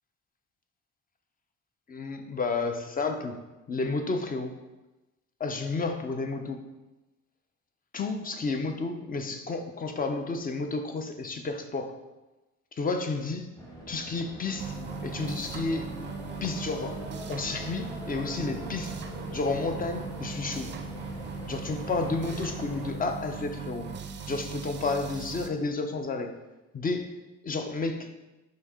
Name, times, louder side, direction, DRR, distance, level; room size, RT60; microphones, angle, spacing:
voice 1, 1.9-3.4 3.7-4.5 5.4-6.6 7.9-12.0 12.8-13.5 13.9-15.9 16.4-18.9 19.3-20.7 21.5-23.9 24.3-26.3 26.7-27.2 27.4-28.1, left 3 dB, 30° left, 6 dB, 0.5 m, -31 dB
sound 1, 13.6-22.9, equal, 10° left, 1.1 m, -42 dB
sound 2, 14.6-25.5, right 5 dB, 40° right, 0.4 m, -39 dB
5.2 x 2.7 x 3.5 m, 1.0 s
cardioid pair, 90°, 30 cm